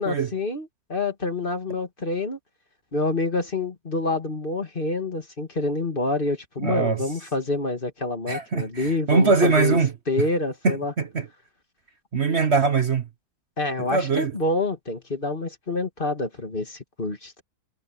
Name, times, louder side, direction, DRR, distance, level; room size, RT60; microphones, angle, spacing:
voice 1, 0.0-2.4 2.9-9.8 10.1-10.9 13.6-17.4, left 2 dB, 35° left, 2.4 m, -27 dB
voice 2, 6.6-7.0 8.3-9.9 10.6-11.3 12.1-13.1 13.9-14.4, right 4 dB, 45° right, 1.3 m, -22 dB
omnidirectional pair, 1.6 m